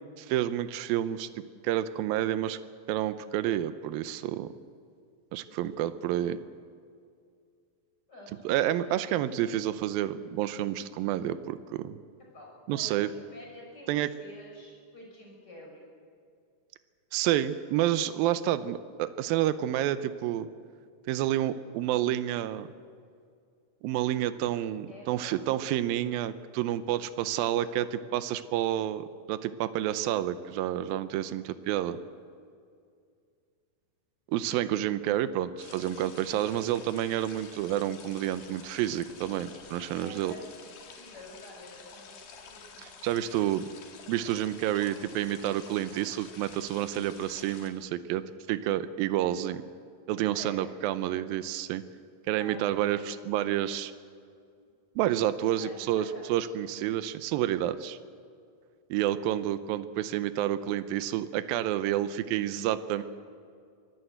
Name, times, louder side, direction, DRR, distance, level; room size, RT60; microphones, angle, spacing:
voice 1, 0.2-2.6 2.9-4.5 5.3-6.4 8.3-12.0 12.7-13.1 13.9-14.1 17.1-20.5 21.1-22.7 23.8-32.0 34.3-40.4 42.8-43.7 44.1-48.2 48.5-49.6 50.1-51.8 52.3-53.9 55.0-58.0 58.9-63.0, right 12 dB, 85° right, 12 dB, 2.5 m, -29 dB
voice 2, 8.1-8.9 12.3-15.9 24.9-25.4 26.9-27.1 39.9-42.8 50.3-50.7 52.4-53.2 55.6-56.4 56.7-56.8 59.2-59.3, left 1 dB, 25° left, -1 dB, 6.7 m, -49 dB
sound 1, 35.6-47.7, left 5 dB, 85° left, 3.8 m, -50 dB
24.5 x 15.5 x 8.0 m, 2.2 s
omnidirectional pair, 4.1 m